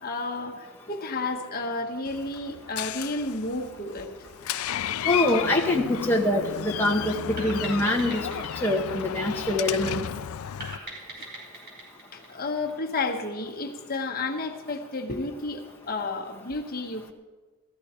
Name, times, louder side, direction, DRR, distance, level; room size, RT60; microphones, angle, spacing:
voice 1, 0.0-4.1 5.0-5.2 11.2-11.3 12.1-17.1, left 3 dB, 45° left, 2 dB, 1.3 m, -32 dB
Door, 2.1-10.8, left 10 dB, 80° left, 0.4 m, -33 dB
voice 2, 5.1-8.2 8.6-10.1, left 1 dB, 10° left, -1 dB, 1.0 m, -24 dB
sound 1, 7.4-9.9 10.6-13.2, right 2 dB, 45° right, 5.2 m, -42 dB
16.5 x 14.0 x 4.4 m, 1.3 s
head